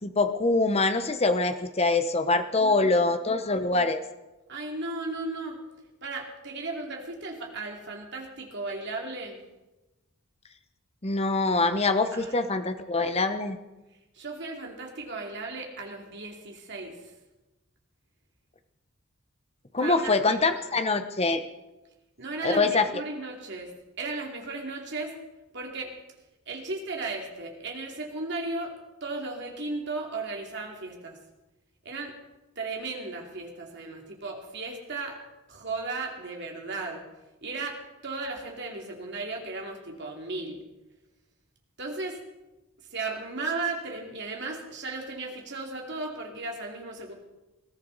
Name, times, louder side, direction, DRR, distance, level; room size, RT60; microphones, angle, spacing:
voice 1, 0.0-4.0 11.0-13.6 19.7-21.4 22.4-22.9, left 3 dB, 30° left, 9 dB, 0.9 m, -24 dB
voice 2, 2.6-3.2 4.5-5.6 6.0-9.4 12.1-12.4 14.1-17.0 19.8-20.7 22.2-25.2 25.5-25.9 26.5-28.7 29.0-31.2 31.8-32.1 32.6-35.2 35.5-37.0 37.4-37.8 38.0-40.6 41.8-42.2 42.9-47.1, right 3 dB, 50° right, 1 dB, 2.8 m, -35 dB
20.5 x 15.0 x 4.1 m, 1.1 s
head